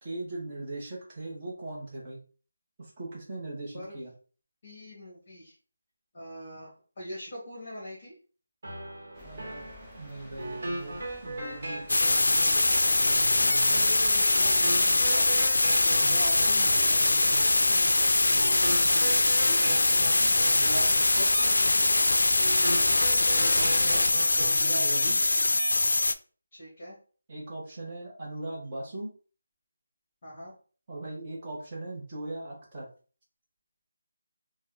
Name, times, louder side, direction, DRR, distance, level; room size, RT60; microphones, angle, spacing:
voice 1, 0.0-2.2 2.8-4.1 9.2-9.7 10.0-14.0 16.0-21.3 23.3-25.2 27.3-29.1 30.9-32.9, right 2 dB, 20° right, -5 dB, 0.9 m, -40 dB
voice 2, 4.6-5.5 6.1-8.1 13.4-15.7 23.6-24.0 26.5-27.0 30.2-30.5, equal, 25° left, -5 dB, 1.1 m, -43 dB
sound 1, 8.6-24.6, right 1 dB, 40° right, 1.2 m, -38 dB
sound 2, 9.1-25.2, equal, ahead, 0.5 m, -50 dB
sound 3, 11.9-26.1, left 2 dB, 90° left, 0.3 m, -23 dB
2.8 x 2.2 x 3.7 m, 0.39 s
figure-of-eight pair, 175°, 0 cm